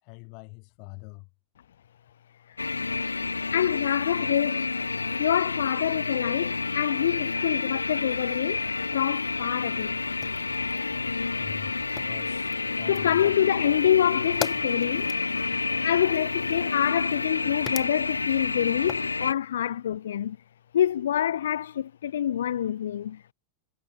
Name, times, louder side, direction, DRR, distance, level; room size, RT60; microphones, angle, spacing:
voice 1, 0.0-1.3 11.4-13.4, left 39 dB, 45° left, 5.0 m, -44 dB
sound 1, 2.6-19.3, left 4 dB, 80° left, 1.5 m, -29 dB
voice 2, 3.5-4.7 5.0-8.6 8.9-10.0 12.9-20.4 20.7-23.3, left 10 dB, 60° left, 0.3 m, -26 dB
Fire, 9.8-19.1, left 10 dB, 25° left, 6.5 m, -42 dB
figure-of-eight pair, 90°, 0 cm